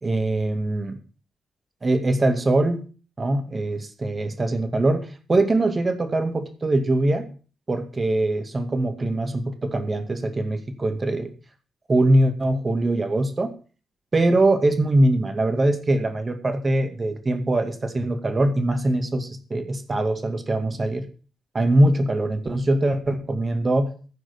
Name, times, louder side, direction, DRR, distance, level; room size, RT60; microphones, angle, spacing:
voice 1, 0.0-1.0 1.8-2.8 3.2-7.3 7.7-11.3 11.9-13.5 14.1-21.1 21.5-23.9, right 2 dB, 40° right, 7 dB, 2.3 m, -22 dB
14.5 x 5.1 x 6.7 m, 0.38 s
supercardioid pair, 45°, 0 cm